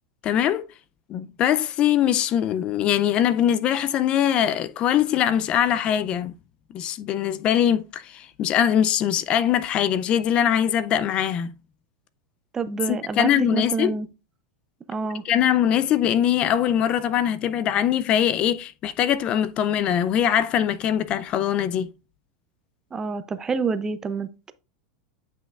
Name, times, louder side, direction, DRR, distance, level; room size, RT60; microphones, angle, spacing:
voice 1, 0.2-0.7 1.1-6.3 6.7-11.5 12.9-14.0 15.2-21.9, left 10 dB, 35° left, 0.4 m, -22 dB
voice 2, 12.5-14.1 14.9-15.2 22.9-24.5, right 5 dB, 20° right, 0.5 m, -28 dB
9.1 x 5.6 x 2.4 m
supercardioid pair, 130°, 3 cm